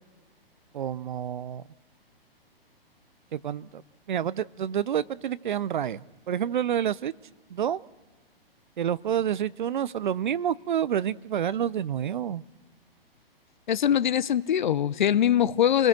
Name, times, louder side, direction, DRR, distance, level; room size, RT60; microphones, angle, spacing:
voice 1, 0.7-1.6 3.3-3.8 4.1-7.1 7.5-7.8 8.8-12.4, right 9 dB, 55° right, 0.6 m, -28 dB
voice 2, 13.7-15.9, left 10 dB, 50° left, 0.8 m, -22 dB
29.5 x 19.5 x 6.1 m
figure-of-eight pair, 120°, 30 cm